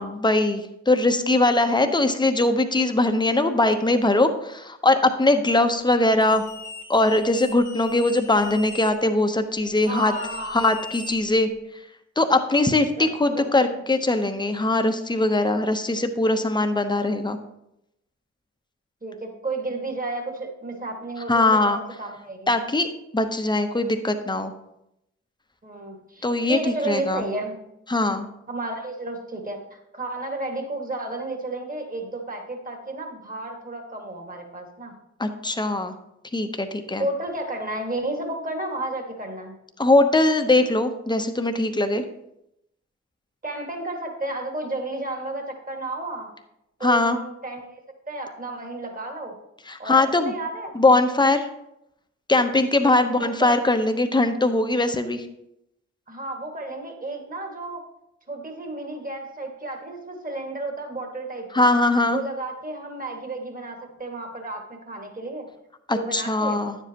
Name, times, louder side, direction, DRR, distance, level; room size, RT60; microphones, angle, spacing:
voice 1, 0.0-6.4 6.9-10.1 10.5-11.5 12.2-17.4 21.3-21.8 22.5-22.9 23.1-24.5 26.2-27.2 27.9-28.3 35.2-35.9 36.3-37.1 39.8-42.0 46.8-47.2 49.7-50.3 50.7-51.5 52.3-55.2 61.5-62.2 65.9-66.8, left 2 dB, 15° left, 7 dB, 0.9 m, -21 dB
sound 1, 6.2-8.9 9.8-11.6, left 4 dB, 70° left, 1.4 m, -40 dB
voice 2, 9.9-10.7 13.0-13.8 19.0-22.5 25.6-26.2 26.5-27.6 28.5-34.9 37.0-39.6 43.4-46.3 46.8-47.8 48.1-49.4 49.8-50.7 52.8-53.6 56.1-57.9 58.3-61.7 62.1-65.5 65.9-66.6, right 2 dB, 25° right, 3 dB, 1.9 m, -32 dB
9.6 x 7.3 x 2.9 m, 0.83 s
cardioid pair, 45°, 32 cm